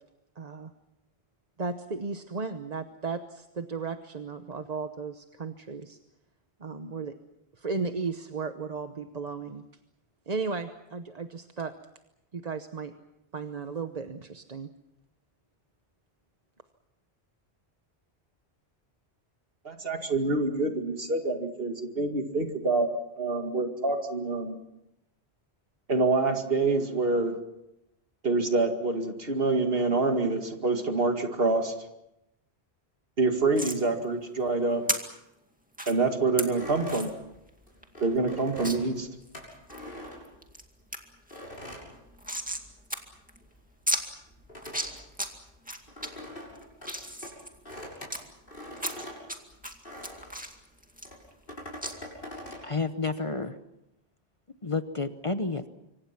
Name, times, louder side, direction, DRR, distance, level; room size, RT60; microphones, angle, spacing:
voice 1, 0.4-0.7 1.6-6.0 6.6-7.2 7.6-9.6 10.3-11.7 12.3-12.9 13.3-14.7, right 4 dB, 40° right, 8 dB, 1.0 m, -35 dB
voice 2, 19.6-22.9 23.2-24.6 25.9-27.4 28.2-31.7 33.2-34.8 35.9-37.1 38.0-39.1, right 3 dB, 60° right, 5 dB, 2.4 m, -26 dB
sound 1, 33.6-33.8 34.9-35.0 35.7-35.9 36.4-36.5 36.9-37.1 37.5-37.6 37.8-37.9 38.6-38.8 39.3-39.8 40.3-40.6 40.9-41.0 41.3-42.7 42.9-43.0 43.3-43.4 43.9-44.0 44.6-45.3 45.7-46.1 46.6-48.2 48.8-49.4 49.6-51.5 51.8-51.9, equal, 10° right, 2.2 m, -33 dB
sound 2, 36.5-40.8 41.3-42.8 43.0-50.4 51.0-52.7, left 1 dB, 55° left, 6.8 m, -43 dB
voice 3, 52.6-53.6 54.6-55.7, left 3 dB, 30° left, 10 dB, 1.0 m, -30 dB
25.5 x 25.0 x 5.9 m, 0.89 s
omnidirectional pair, 1.1 m